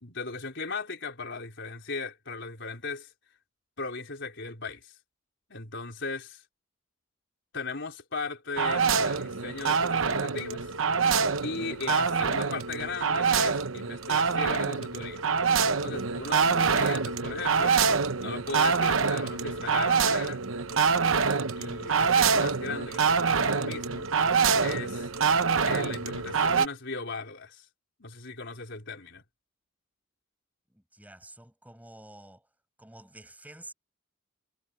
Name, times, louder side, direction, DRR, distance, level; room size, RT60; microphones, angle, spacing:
voice 1, 0.0-3.1 3.8-4.9 5.5-6.4 7.5-10.7 11.4-15.2 15.8-17.8 18.2-20.4 21.6-24.1 24.6-25.1 25.7-27.6 28.0-29.2, left 4 dB, 60° left, 4.5 m, -37 dB
sound 1, 8.6-26.7, right 5 dB, 80° right, 1.0 m, -25 dB
voice 2, 30.7-32.5 32.8-33.7, right 1 dB, 10° right, 8.0 m, -49 dB
head